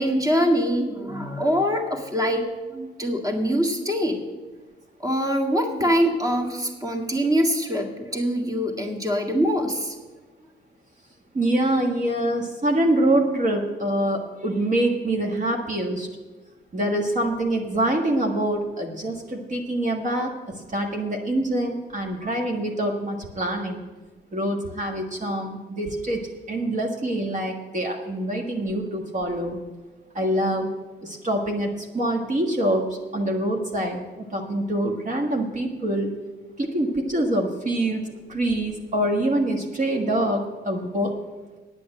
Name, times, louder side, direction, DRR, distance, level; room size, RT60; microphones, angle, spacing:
voice 1, 0.0-4.2 5.0-9.9, equal, 15° right, 3 dB, 1.8 m, -24 dB
voice 2, 11.3-16.1 16.7-20.3 20.7-23.8 24.3-26.2 26.5-29.6 30.1-30.7 31.0-32.9 33.1-36.1 36.6-38.0 38.3-41.2, right 1 dB, 40° right, 1 dB, 1.6 m, -25 dB
9.6 x 8.5 x 7.6 m, 1.3 s
cardioid pair, 90°, 20 cm